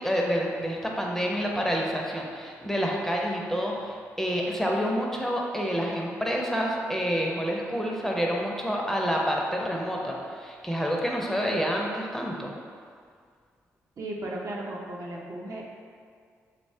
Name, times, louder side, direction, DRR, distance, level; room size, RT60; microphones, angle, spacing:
voice 1, 0.0-12.5, equal, 5° left, -1 dB, 0.4 m, -28 dB
voice 2, 14.0-15.6, right 1 dB, 55° right, -2 dB, 0.4 m, -35 dB
3.0 x 2.1 x 2.6 m, 2.1 s
hypercardioid pair, 40°, 7 cm